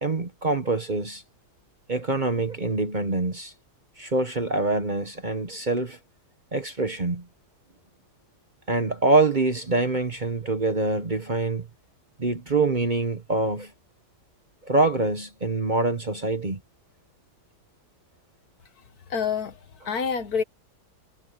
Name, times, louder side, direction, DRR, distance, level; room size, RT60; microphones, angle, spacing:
voice 1, 0.0-1.2 1.9-3.5 4.0-6.0 6.5-7.3 8.7-11.7 12.2-13.7 14.6-16.6, right 3 dB, 30° right, 1.2 m, -25 dB
voice 2, 19.1-20.4, left 6 dB, 65° left, 1.8 m, -28 dB
omnidirectional pair, 1.8 m